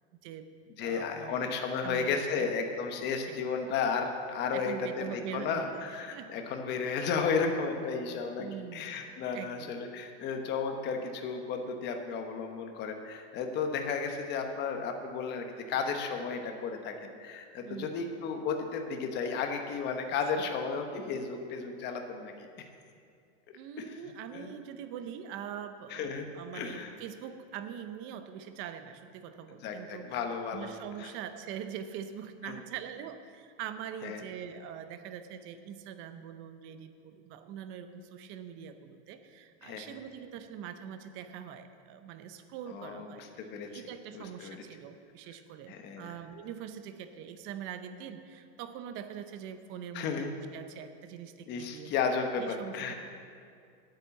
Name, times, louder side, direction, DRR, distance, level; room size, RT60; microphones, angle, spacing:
voice 1, 0.1-0.5 0.8-1.5 1.8-2.1 2.4-2.5 3.3-3.4 4.5-5.8 6.1-6.3 8.4-8.9 9.3-9.7 17.6-18.0 20.1-20.2 23.5-30.2 30.5-43.3 43.7-51.9 52.4-52.9, right 9 dB, 35° right, 9 dB, 0.7 m, -43 dB
voice 2, 0.8-22.7 23.8-24.0 24.3-24.5 25.9-26.3 26.5-26.9 29.6-30.7 31.0-31.1 32.4-32.6 34.0-34.2 39.6-40.0 42.7-43.8 44.1-44.6 45.7-46.1 49.9-50.3 51.5-52.9, left 5 dB, 30° left, 4 dB, 1.1 m, -33 dB
9.8 x 9.1 x 7.1 m, 2.3 s
supercardioid pair, 155°, 34 cm